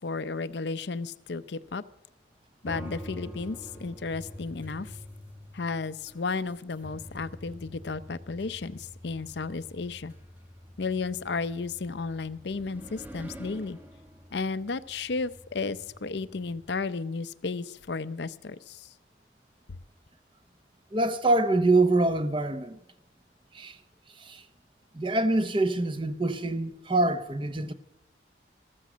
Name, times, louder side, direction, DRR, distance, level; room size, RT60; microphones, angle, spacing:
voice 1, 0.0-1.8 2.6-4.9 5.5-10.1 10.8-13.8 14.3-18.9, left 4 dB, 65° left, 0.6 m, -33 dB
sound 1, 2.6-16.9, equal, 10° right, 1.1 m, -46 dB
voice 2, 20.9-22.8 23.5-23.8 24.2-24.4 24.9-27.7, right 2 dB, 25° right, 0.8 m, -25 dB
14.0 x 14.0 x 6.2 m
head